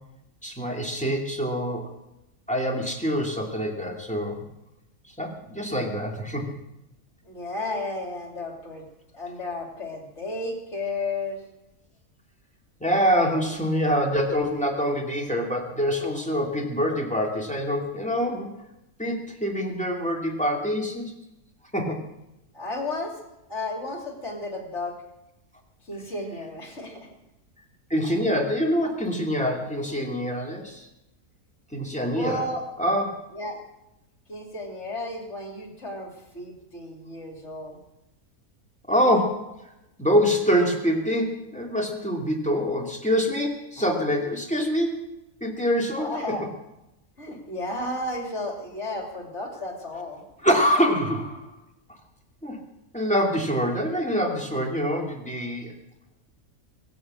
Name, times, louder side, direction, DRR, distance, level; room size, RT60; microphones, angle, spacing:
voice 1, 0.4-1.9 2.5-4.4 5.2-6.5 12.8-18.5 19.0-21.1 21.7-22.0 27.9-30.9 31.7-32.4 32.8-33.1 38.9-39.7 40.0-45.1 45.4-46.4 47.3-47.4 50.4-51.5 51.9-52.0 52.4-52.6 52.9-55.7, equal, 5° left, 1 dB, 2.4 m, -25 dB
voice 2, 7.2-8.9 9.1-11.4 13.3-13.4 22.5-23.1 23.5-25.0 25.9-27.2 32.1-32.6 33.3-33.6 34.3-37.8 46.0-46.4 47.2-50.2, left 2 dB, 50° left, 2 dB, 3.1 m, -33 dB
22.5 x 7.9 x 7.7 m, 0.92 s
omnidirectional pair, 1.5 m